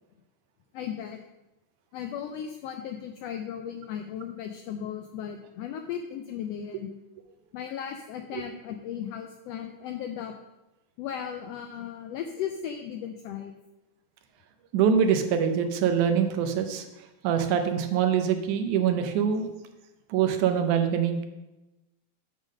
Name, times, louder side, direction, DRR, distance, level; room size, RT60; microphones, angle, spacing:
voice 1, 0.7-1.2 1.9-6.9 7.5-10.3 11.0-13.5, left 9 dB, 90° left, 6 dB, 1.4 m, -36 dB
voice 2, 14.7-16.9 17.2-19.5 20.1-21.3, right 7 dB, 90° right, 6 dB, 2.2 m, -24 dB
8.5 x 3.8 x 6.2 m, 0.99 s
omnidirectional pair, 3.4 m